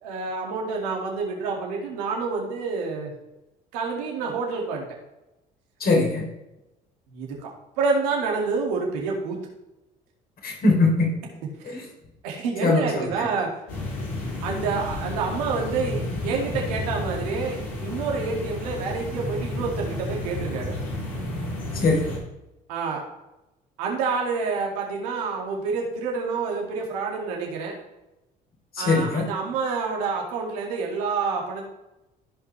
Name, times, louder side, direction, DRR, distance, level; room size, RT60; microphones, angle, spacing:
voice 1, 0.0-3.1 3.7-4.9 7.1-7.5 7.8-9.4 12.2-13.5 14.4-20.8 22.7-23.0 23.8-27.8 28.8-31.7, right 4 dB, 85° right, 0 dB, 2.2 m, -28 dB
voice 2, 5.8-6.2 10.4-11.1 11.6-11.8 12.6-12.9 13.2-13.3 21.7-22.0 28.8-29.2, left 3 dB, 50° left, 0 dB, 3.3 m, -21 dB
sound 1, 13.7-22.2, left 1 dB, 85° left, 3.4 m, -31 dB
15.0 x 5.3 x 3.3 m, 0.93 s
hypercardioid pair, 65°, 20 cm